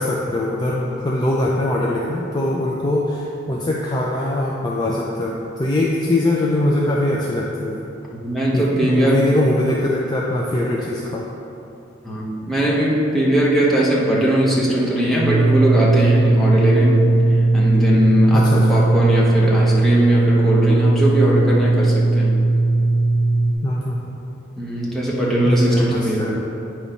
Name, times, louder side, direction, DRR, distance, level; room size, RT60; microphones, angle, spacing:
voice 1, 0.0-7.8 8.5-11.3 18.3-18.8 23.6-24.1 25.4-26.3, left 1 dB, 20° left, -3 dB, 0.5 m, -22 dB
voice 2, 8.1-9.2 12.0-17.0 17.5-22.4 24.6-26.3, right 1 dB, ahead, -6 dB, 1.0 m, -19 dB
sound 1, 15.2-23.5, right 2 dB, 90° right, 0.6 m, -17 dB
8.6 x 3.1 x 5.4 m, 2.8 s
head